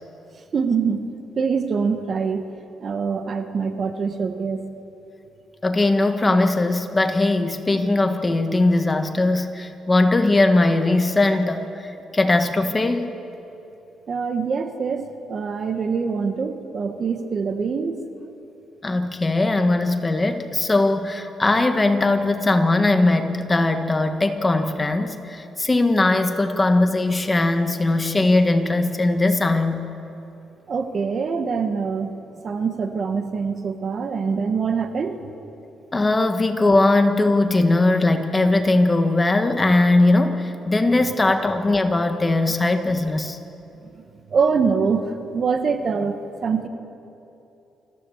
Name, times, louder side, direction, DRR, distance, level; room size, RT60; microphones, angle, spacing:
voice 1, 0.5-2.4 2.8-4.6 14.1-18.0 30.7-32.1 32.4-35.2 43.8-44.0 44.3-46.7, right 5 dB, 50° right, 7 dB, 1.5 m, -24 dB
voice 2, 5.6-13.1 18.8-29.8 35.9-43.4, left 2 dB, 20° left, 7 dB, 1.5 m, -20 dB
25.5 x 16.0 x 7.2 m, 2.9 s
cardioid pair, 90°, 0 cm